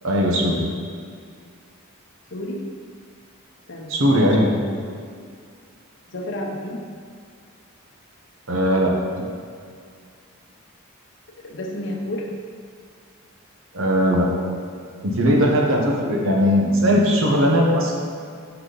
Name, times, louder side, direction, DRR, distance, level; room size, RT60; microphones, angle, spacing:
voice 1, 0.0-0.6 3.9-4.5 8.5-8.9 13.7-14.3 15.0-17.9, equal, 65° right, -1 dB, 1.0 m, -19 dB
voice 2, 2.3-2.7 3.7-4.2 4.7-4.9 6.1-6.8 11.4-12.3, left 1 dB, 55° left, 0 dB, 0.8 m, -31 dB
5.9 x 5.9 x 3.9 m, 2.2 s
head